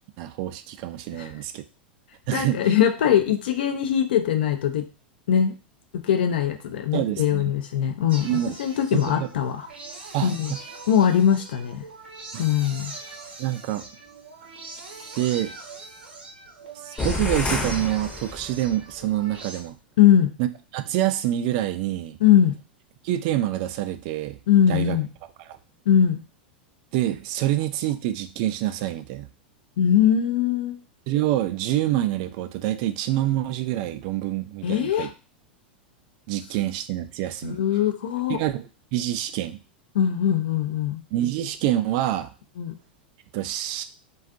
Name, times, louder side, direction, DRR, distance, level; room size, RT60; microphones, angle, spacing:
voice 1, 0.2-1.6 2.3-2.6 6.9-7.5 8.2-8.5 8.9-9.3 10.1-10.6 12.3-12.4 13.4-13.8 15.2-15.5 16.8-19.8 20.4-20.5 20.7-22.2 23.0-24.4 24.7-25.0 26.9-29.3 31.1-35.1 36.3-37.6 38.3-39.6 41.1-42.3 43.3-43.8, right 13 dB, 50° right, 10 dB, 0.3 m, -26 dB
voice 2, 2.3-4.8 5.3-5.5 6.0-9.7 10.2-10.5 10.9-11.8 12.4-12.9 20.0-20.3 22.2-22.5 24.5-25.1 25.9-26.2 29.8-30.8 34.6-35.1 37.4-38.4 39.9-41.0 42.6-42.8, left 9 dB, 70° left, 6 dB, 0.4 m, -21 dB
sound 1, 8.1-19.6, right 3 dB, 80° right, 0.7 m, -42 dB
sound 2, 17.0-18.8, left 3 dB, 20° left, 0.7 m, -29 dB
2.4 x 2.3 x 2.4 m, 0.33 s
hypercardioid pair, 95°, 6 cm